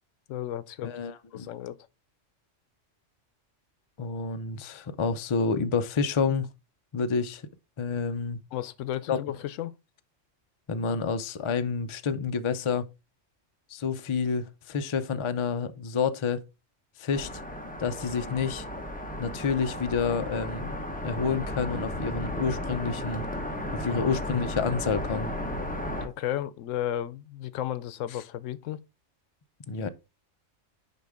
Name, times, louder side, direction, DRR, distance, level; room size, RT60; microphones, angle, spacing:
voice 1, 0.3-0.9 1.3-1.8 8.5-9.7 23.9-24.1 26.0-28.8, left 12 dB, 85° left, 0.9 m, -33 dB
voice 2, 0.8-1.5 4.0-6.5 6.9-7.4 7.8-8.4 9.1-9.2 10.7-12.9 13.7-16.4 17.0-17.3 17.8-18.7 19.2-20.8 21.0-23.2 23.7-25.3 29.7-29.9, left 5 dB, 50° left, 0.3 m, -29 dB
sound 1, 17.1-26.1, left 1 dB, 5° left, 1.0 m, -34 dB
6.6 x 5.1 x 3.5 m
omnidirectional pair, 1.3 m